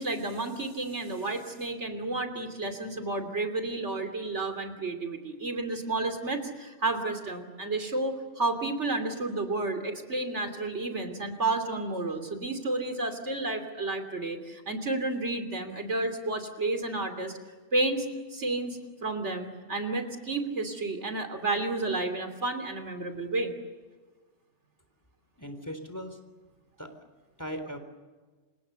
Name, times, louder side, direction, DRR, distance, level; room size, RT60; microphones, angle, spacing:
voice 1, 0.0-17.4 17.7-23.5, right 2 dB, 70° right, 7 dB, 3.3 m, -31 dB
voice 2, 25.4-26.2 26.8-26.9 27.4-27.8, equal, 15° left, 7 dB, 3.7 m, -38 dB
29.5 x 26.5 x 6.9 m, 1.3 s
omnidirectional pair, 1.2 m